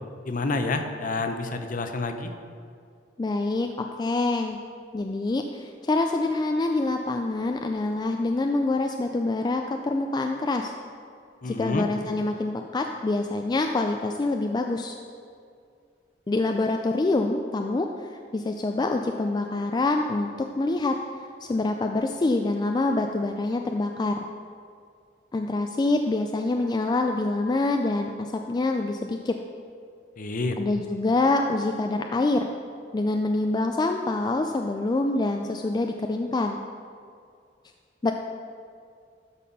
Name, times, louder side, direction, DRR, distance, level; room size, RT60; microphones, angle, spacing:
voice 1, 0.3-2.3 11.4-11.9 30.2-30.6, left 3 dB, 50° left, 7 dB, 0.7 m, -28 dB
voice 2, 3.2-4.6 4.9-10.7 11.4-15.0 16.3-20.3 20.6-20.9 21.4-24.2 25.3-29.3 30.6-32.5 32.9-36.6 38.0-38.1, left 2 dB, 25° left, 4 dB, 0.3 m, -26 dB
12.5 x 4.2 x 5.4 m, 2.3 s
head